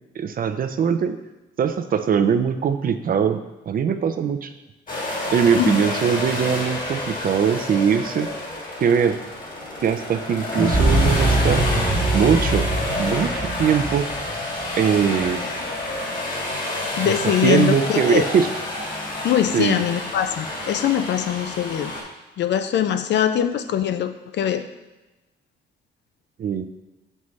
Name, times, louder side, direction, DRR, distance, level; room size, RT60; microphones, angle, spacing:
voice 1, 0.1-1.2 1.6-3.4 3.7-4.5 5.3-8.3 8.8-9.2 9.8-11.6 12.1-12.7 13.0-14.1 14.8-15.4 17.0-18.5 19.5-19.8 26.4-26.7, right 7 dB, 45° right, 9 dB, 0.5 m, -21 dB
sound 1, 4.9-22.0, left 2 dB, 45° left, 1.8 m, -29 dB
sound 2, 10.6-15.3, right 2 dB, 20° right, 1.0 m, -22 dB
voice 2, 17.0-18.2 19.2-21.9 22.4-24.6, left 10 dB, 60° left, 10 dB, 0.5 m, -22 dB
6.0 x 5.4 x 3.2 m, 1.1 s
cardioid pair, 90°, 20 cm